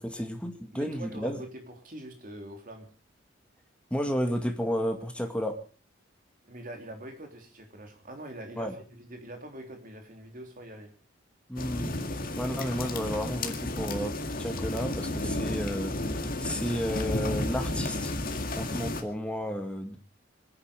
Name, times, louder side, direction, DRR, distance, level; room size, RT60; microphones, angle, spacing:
voice 1, 0.0-1.4 3.9-5.6 8.6-8.7 11.5-11.9 12.4-18.1 18.6-20.0, equal, 5° left, 2.2 m, -32 dB
voice 2, 0.7-2.9 6.4-10.9, right 1 dB, 45° right, 3.4 m, -44 dB
sound 1, 11.6-19.0, left 1 dB, 50° left, 2.1 m, -32 dB
25.5 x 10.0 x 5.1 m
head